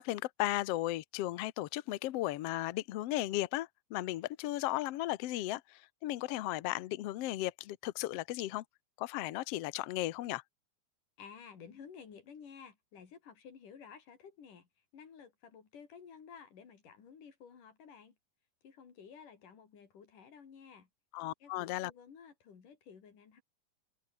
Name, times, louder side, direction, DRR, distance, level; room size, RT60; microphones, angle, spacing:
voice 1, 0.0-8.6 9.0-10.4 21.1-21.9, left 16 dB, 90° left, 1.3 m, -35 dB
voice 2, 11.2-14.7 14.9-18.1 18.6-20.9 21.4-23.4, left 6 dB, 65° left, 5.0 m, -53 dB
omnidirectional pair, 4.1 m